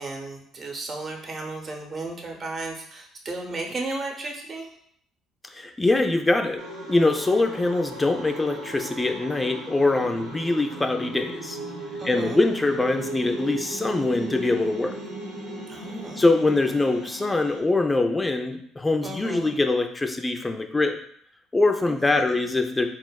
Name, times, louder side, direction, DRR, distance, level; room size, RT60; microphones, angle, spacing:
voice 1, 0.0-4.7 12.0-12.4 15.7-16.2 19.0-19.5 21.9-22.4, right 2 dB, 40° right, 1 dB, 0.7 m, -34 dB
voice 2, 5.5-6.6 6.9-11.6 12.0-14.9 16.2-21.0 21.5-22.9, left 2 dB, 20° left, 5 dB, 0.4 m, -23 dB
sound 1, 6.6-17.6, right 2 dB, 90° right, 0.7 m, -37 dB
4.0 x 2.0 x 2.2 m, 0.67 s
hypercardioid pair, 60°, 0 cm